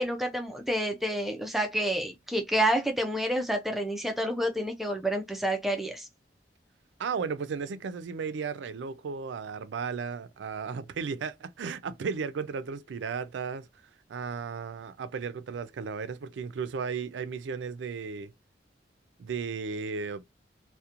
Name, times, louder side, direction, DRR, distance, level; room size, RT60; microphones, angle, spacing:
voice 1, 0.0-6.1, right 1 dB, ahead, 0.3 m, -29 dB
voice 2, 7.0-13.7 14.1-18.3 19.2-20.2, right 5 dB, 90° right, 0.4 m, -35 dB
2.7 x 2.1 x 2.4 m
head